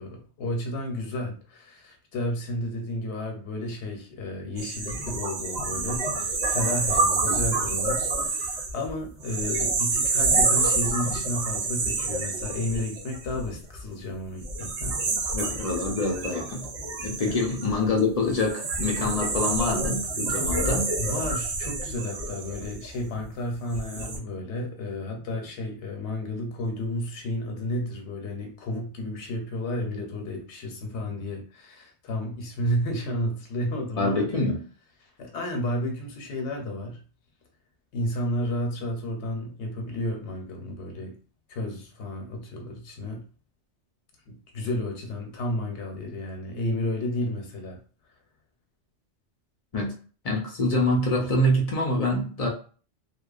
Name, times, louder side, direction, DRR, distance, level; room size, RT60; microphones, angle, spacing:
voice 1, 0.0-15.0 17.2-17.4 21.0-34.2 35.0-37.0 37.9-41.2 41.5-43.2 44.3-47.8, left 1 dB, 90° left, 2 dB, 0.9 m, -32 dB
sound 1, 4.6-13.8 14.4-23.2 23.7-24.2, right 3 dB, 70° right, 0.9 m, -28 dB
voice 2, 15.3-16.6 17.0-20.9 34.0-34.6 49.7-49.9 50.2-52.5, left 2 dB, 45° left, 1 dB, 0.5 m, -25 dB
2.7 x 2.1 x 2.3 m, 0.40 s
omnidirectional pair, 1.1 m